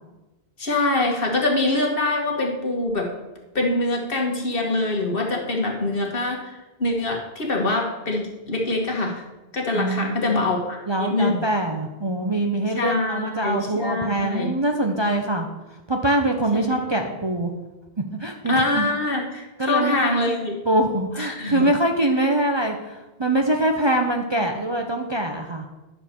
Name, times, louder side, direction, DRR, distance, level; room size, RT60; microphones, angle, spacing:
voice 1, 0.6-3.1 3.6-9.2 9.5-11.4 12.8-14.5 16.5-16.8 18.5-20.6 21.2-21.7, left 2 dB, 60° left, 0 dB, 1.7 m, -24 dB
voice 2, 9.7-10.3 10.9-15.5 15.9-17.5 18.2-18.9 19.6-20.0 20.3-20.4 20.7-25.7, right 1 dB, 30° right, 2 dB, 0.7 m, -23 dB
9.8 x 6.6 x 4.4 m, 1.1 s
omnidirectional pair, 1.1 m